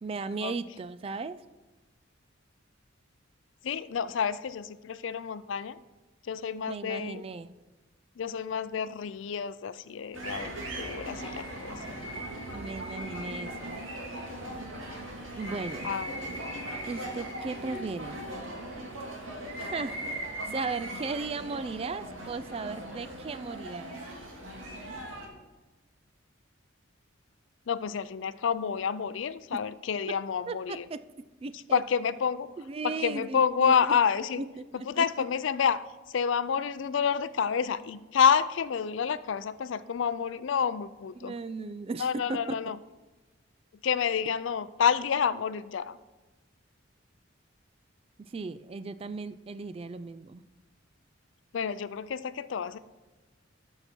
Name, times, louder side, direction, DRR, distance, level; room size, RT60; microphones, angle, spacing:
voice 1, 0.0-1.4 6.7-7.5 12.5-13.8 15.4-15.9 16.9-18.2 19.6-20.0 20.5-24.0 30.5-31.0 31.4-31.8 32.6-34.0 34.4-35.1 41.2-42.6 48.2-50.4, right 4 dB, 30° right, 13 dB, 0.3 m, -36 dB
voice 2, 3.6-5.8 6.2-7.2 8.2-11.9 15.8-16.2 27.7-30.9 31.7-32.5 32.8-34.4 34.9-35.9 36.1-41.3 42.0-42.8 43.8-46.0 51.5-52.8, left 7 dB, 70° left, 16 dB, 0.4 m, -29 dB
sound 1, 10.1-25.3, right 1 dB, 85° right, 2.0 m, -39 dB
13.5 x 5.9 x 4.4 m, 1.1 s
head